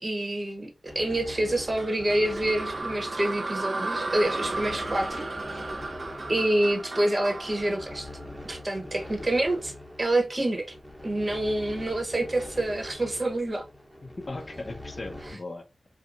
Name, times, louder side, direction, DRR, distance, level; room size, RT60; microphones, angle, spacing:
voice 1, 0.0-5.2 6.3-8.1 8.5-10.6 11.0-13.6, right 1 dB, 35° right, 1.0 m, -27 dB
sound 1, 0.9-15.4, left 1 dB, ahead, 1.0 m, -43 dB
sound 2, 1.8-8.9, right 2 dB, 50° right, 0.6 m, -34 dB
voice 2, 14.0-15.9, left 2 dB, 45° left, 0.7 m, -38 dB
4.7 x 2.2 x 2.5 m
wide cardioid pair, 80°, 0 cm